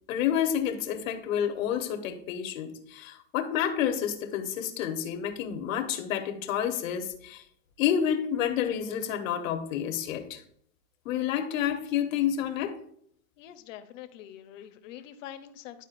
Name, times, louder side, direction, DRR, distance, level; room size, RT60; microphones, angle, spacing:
voice 1, 0.1-7.4 7.8-10.4 11.0-12.8, left 9 dB, 90° left, 1.2 m, -29 dB
voice 2, 13.4-15.8, left 11 dB, 75° left, 0.9 m, -45 dB
11.5 x 4.5 x 2.5 m
supercardioid pair, 165°, 39 cm